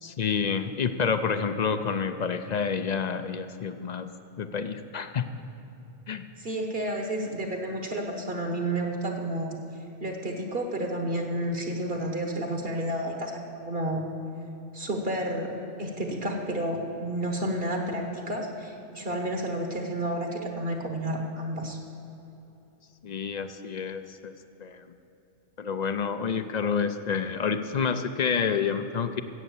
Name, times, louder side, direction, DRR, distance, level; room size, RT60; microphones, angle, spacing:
voice 1, 0.0-4.1 4.4-5.3 6.1-6.3 23.0-24.3 24.6-24.8 25.6-29.2, left 6 dB, 50° left, 10 dB, 0.5 m, -28 dB
voice 2, 6.4-9.5 10.0-14.0 14.7-21.8, right 1 dB, 55° right, 2 dB, 1.5 m, -31 dB
14.0 x 8.3 x 7.2 m, 2.9 s
omnidirectional pair, 1.2 m